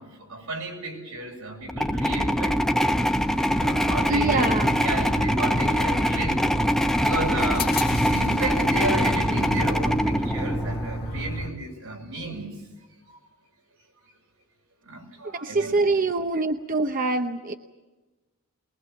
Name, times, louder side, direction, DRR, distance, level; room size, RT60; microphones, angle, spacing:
voice 1, 0.0-2.6 3.5-4.5 4.7-6.4 7.0-12.5 13.1-13.2 14.8-15.7, right 2 dB, 90° right, 1 dB, 7.2 m, -32 dB
sound 1, 1.7-11.0, equal, ahead, 1.1 m, -24 dB
sound 2, 3.2-11.5, equal, 45° left, 1.8 m, -33 dB
voice 2, 4.1-4.8 15.4-17.5, right 3 dB, 40° right, 6 dB, 0.9 m, -25 dB
23.0 x 21.5 x 7.1 m, 1.1 s
head